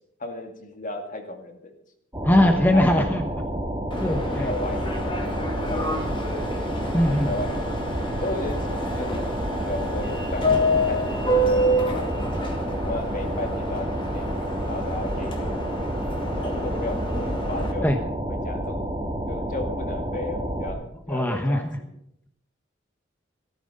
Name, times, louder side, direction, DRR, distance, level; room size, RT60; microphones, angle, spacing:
voice 1, 0.2-1.7 2.3-3.1 4.3-6.4 7.0-7.8 8.2-9.2 9.6-17.9 18.3-18.8 19.3-22.0, left 2 dB, 45° left, 4 dB, 2.2 m, -35 dB
sound 1, 2.1-20.7, right 1 dB, 15° right, 2.7 m, -30 dB
voice 2, 2.2-3.2 4.0-4.5 6.9-7.3 17.8-18.0 21.1-21.8, left 1 dB, 10° left, 4 dB, 1.0 m, -21 dB
Subway metro underground, 3.9-17.7, equal, 25° left, 2.3 m, -28 dB
15.0 x 13.5 x 5.4 m, 0.74 s
head